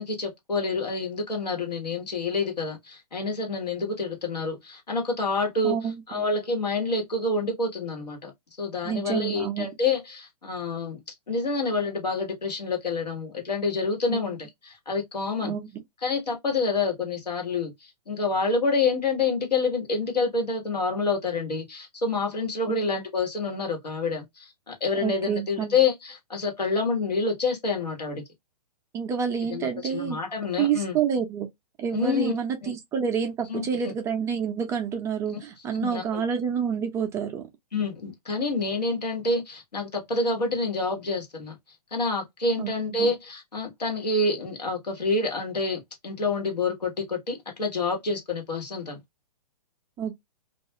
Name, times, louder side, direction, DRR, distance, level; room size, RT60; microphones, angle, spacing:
voice 1, 0.0-8.3 8.6-11.0 11.3-15.5 16.0-28.2 29.5-31.0 31.9-32.3 32.6-32.7 33.5-33.9 35.8-36.2 37.7-41.6 41.9-49.0, left 3 dB, 85° left, 1.3 m, -28 dB
voice 2, 5.6-6.3 8.8-9.7 14.1-14.2 15.4-15.7 22.7-22.8 25.0-25.8 28.9-30.2 30.6-31.5 31.8-37.4 42.6-42.7 43.0-43.1 50.0-50.2, right 7 dB, 15° right, 0.4 m, -28 dB
2.4 x 2.3 x 2.7 m
figure-of-eight pair, 120°, 20 cm